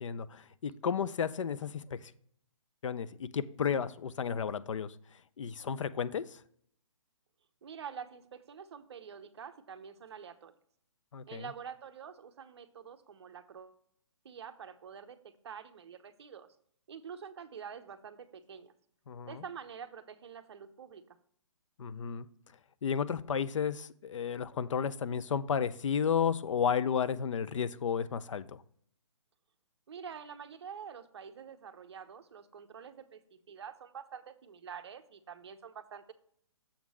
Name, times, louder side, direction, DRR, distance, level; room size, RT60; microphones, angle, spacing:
voice 1, 0.0-2.1 2.8-4.9 5.4-6.4 11.1-11.4 19.1-19.4 21.8-22.3 22.8-28.6, left 7 dB, 70° left, 15 dB, 0.5 m, -33 dB
voice 2, 7.6-10.5 11.3-13.8 14.2-16.5 16.9-18.7 19.2-21.0 29.9-36.1, right 7 dB, 55° right, 9 dB, 0.7 m, -47 dB
7.1 x 3.7 x 6.2 m, 0.64 s
hypercardioid pair, 165°, 17 cm